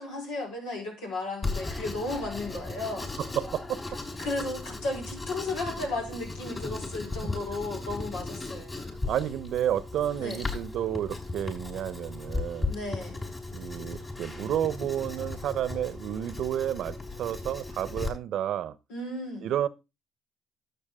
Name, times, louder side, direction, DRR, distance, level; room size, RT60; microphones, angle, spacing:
voice 1, 0.0-3.1 4.2-8.9 10.2-10.4 12.7-13.3 18.9-19.5, left 2 dB, 80° left, 4.6 m, -34 dB
Writing, 1.4-18.1, left 3 dB, 30° left, 6.2 m, -36 dB
voice 2, 3.4-4.0 9.1-12.8 13.5-18.7 19.4-19.7, right 11 dB, 65° right, 0.8 m, -31 dB
12.5 x 8.1 x 3.6 m
hypercardioid pair, 55°, 0 cm